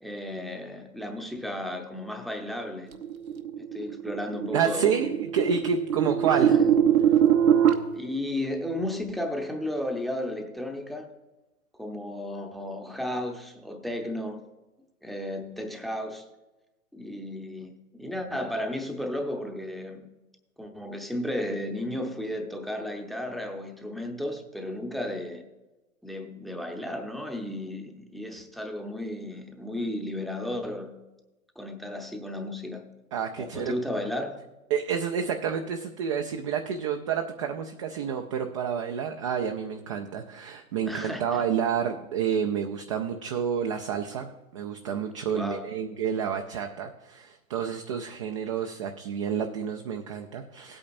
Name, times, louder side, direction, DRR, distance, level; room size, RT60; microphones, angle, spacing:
voice 1, 0.0-2.9 3.6-5.1 6.3-6.7 7.9-11.1 11.8-14.4 15.0-16.2 16.9-20.0 20.6-25.4 26.0-30.9 31.6-32.8 33.4-34.4 40.9-41.5 45.3-45.7, left 1 dB, ahead, 0.7 m, -34 dB
sound 1, 3.0-7.7, right 9 dB, 80° right, 1.0 m, -23 dB
voice 2, 4.5-6.6 33.1-33.7 34.7-50.8, right 7 dB, 25° right, 0.3 m, -29 dB
17.0 x 8.6 x 2.6 m
figure-of-eight pair, 110°, 42 cm